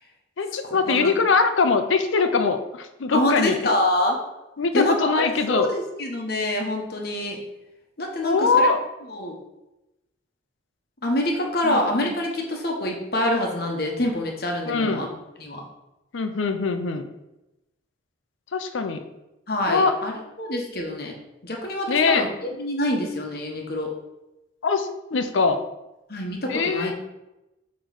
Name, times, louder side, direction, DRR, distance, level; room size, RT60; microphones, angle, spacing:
voice 1, 0.4-3.6 4.6-5.7 8.2-8.8 11.6-12.1 14.7-15.0 16.1-17.0 18.5-19.0 19.7-20.0 21.9-22.3 24.6-25.6 26.5-27.0, left 4 dB, 85° left, 8 dB, 0.6 m, -22 dB
voice 2, 3.1-4.2 4.7-7.4 8.0-8.7 9.1-9.4 11.0-15.1 15.4-15.6 19.5-21.1 21.4-23.9 26.1-26.9, left 1 dB, 55° left, 1 dB, 1.1 m, -26 dB
7.8 x 3.1 x 4.0 m, 0.96 s
head